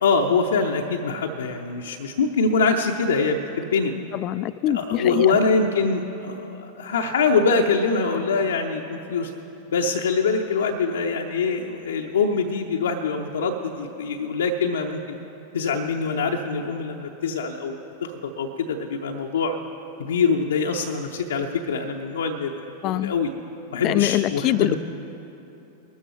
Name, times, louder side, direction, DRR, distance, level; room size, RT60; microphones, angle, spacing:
voice 1, 0.0-3.9 4.7-9.3 9.7-15.0 15.5-19.6 20.0-23.3 23.7-24.7, left 4 dB, 65° left, 1 dB, 0.7 m, -24 dB
voice 2, 4.1-5.4 22.8-23.1 23.8-24.7, left 14 dB, 35° left, 17 dB, 0.3 m, -24 dB
21.0 x 12.5 x 3.1 m, 3.0 s
figure-of-eight pair, 90°, 0 cm